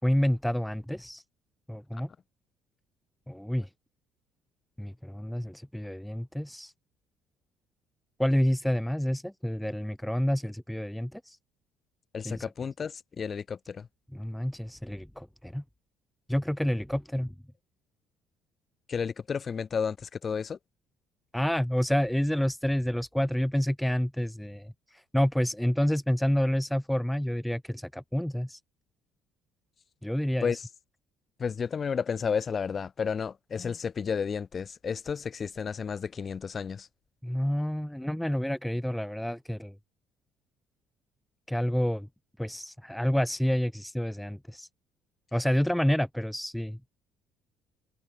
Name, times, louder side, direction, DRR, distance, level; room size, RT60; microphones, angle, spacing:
voice 1, 0.0-1.2 1.7-2.1 3.3-3.7 4.8-6.7 8.2-11.4 12.2-12.5 14.1-15.6 16.3-17.3 21.3-28.6 30.0-30.6 37.2-39.7 41.5-42.1 42.4-44.7 45.3-46.9, equal, ahead, 0.4 m, -29 dB
voice 2, 12.1-13.9 18.9-20.6 30.4-30.7 31.4-36.9, left 6 dB, 30° left, 1.0 m, -32 dB
cardioid pair, 125°, 0 cm